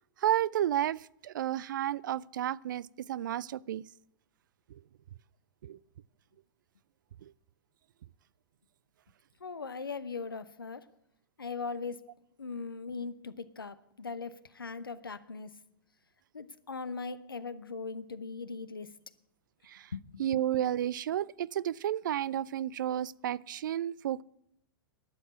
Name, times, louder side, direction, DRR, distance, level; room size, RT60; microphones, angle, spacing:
voice 1, 0.2-3.8 4.7-4.8 5.6-5.8 7.2-7.3 19.7-19.9 20.2-24.2, right 11 dB, 65° right, 0.4 m, -32 dB
voice 2, 9.4-10.9 11.4-12.1 12.4-15.5 16.3-18.9 19.9-20.0, left 4 dB, 85° left, 0.8 m, -39 dB
12.0 x 7.2 x 9.5 m
figure-of-eight pair, 95°, 11 cm